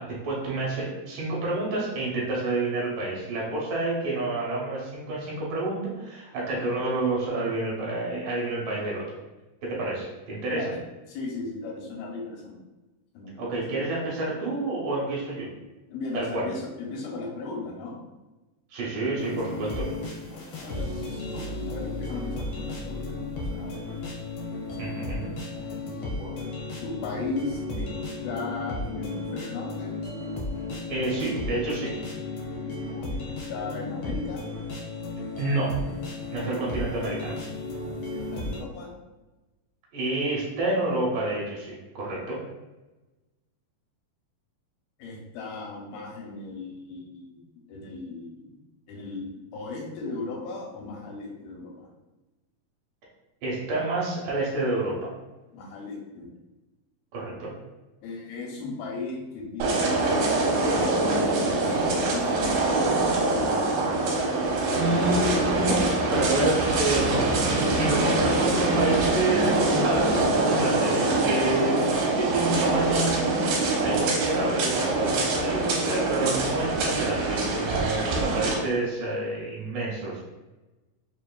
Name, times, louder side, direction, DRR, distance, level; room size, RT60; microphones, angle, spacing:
voice 1, 0.0-9.0 9.6-10.6 13.4-15.5 16.1-16.5 18.7-19.9 24.8-25.3 30.9-32.0 35.4-35.8 36.3-37.3 39.9-42.4 53.4-55.1 57.1-57.5 64.7-65.8 66.1-80.2, right 2 dB, 70° right, -5 dB, 2.6 m, -29 dB
voice 2, 11.1-12.6 13.1-13.8 15.9-18.0 20.2-23.9 24.7-26.5 26.8-27.9 28.2-30.0 32.6-34.4 38.1-38.9 45.0-47.4 47.7-48.5 48.9-51.9 55.5-56.3 58.0-63.5, left 3 dB, 90° left, -1 dB, 2.7 m, -37 dB
sound 1, 19.2-38.6, left 2 dB, 75° left, 1.4 m, -34 dB
sound 2, 59.6-78.5, right 2 dB, 90° right, 2.8 m, -24 dB
6.2 x 2.8 x 2.3 m, 1.1 s
omnidirectional pair, 4.2 m